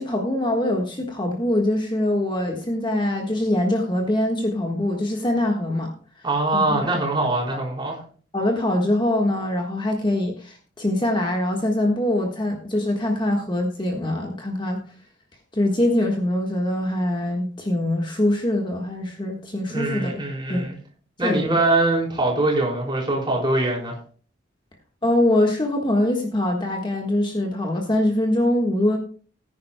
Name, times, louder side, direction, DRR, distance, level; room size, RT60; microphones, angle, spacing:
voice 1, 0.0-5.9 6.2-6.3 6.5-6.8 7.5-7.6 8.3-14.8 15.5-20.2 20.5-20.6 21.2-21.5 25.0-29.0, left 1 dB, 25° left, 1 dB, 1.5 m, -23 dB
voice 2, 6.2-8.0 19.7-20.8 21.2-23.9, right 2 dB, 25° right, -2 dB, 4.2 m, -23 dB
19.0 x 10.0 x 2.2 m, 0.41 s
head